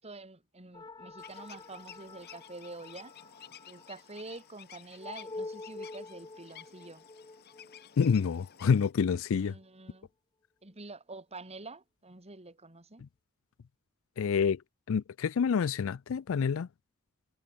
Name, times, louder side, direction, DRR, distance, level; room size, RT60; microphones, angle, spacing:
voice 1, 0.0-3.1 3.7-7.0 9.4-10.1 10.6-13.0, right 3 dB, 30° right, 2.9 m, -47 dB
sound 1, 0.7-9.6, left 2 dB, 20° left, 0.7 m, -47 dB
sound 2, 1.2-8.9, left 9 dB, 50° left, 1.0 m, -53 dB
voice 2, 8.0-9.5 14.2-14.6 14.9-16.7, left 6 dB, 65° left, 0.4 m, -27 dB
head